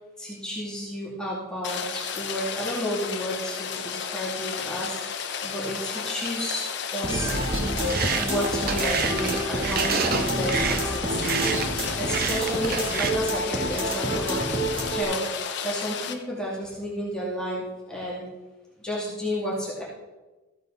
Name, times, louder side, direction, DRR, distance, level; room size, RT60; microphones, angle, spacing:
voice 1, 0.2-6.7 6.9-7.3 8.2-11.3 12.0-15.3 15.6-18.2 18.8-19.8, equal, 5° left, -7 dB, 2.3 m, -31 dB
Rain, 1.6-16.1, left 7 dB, 55° left, 0.9 m, -33 dB
sound 1, 7.0-15.0, right 1 dB, 25° right, 2.4 m, -28 dB
sound 2, 7.3-13.1, right 5 dB, 45° right, 0.7 m, -29 dB
14.5 x 8.0 x 3.9 m, 1.1 s
head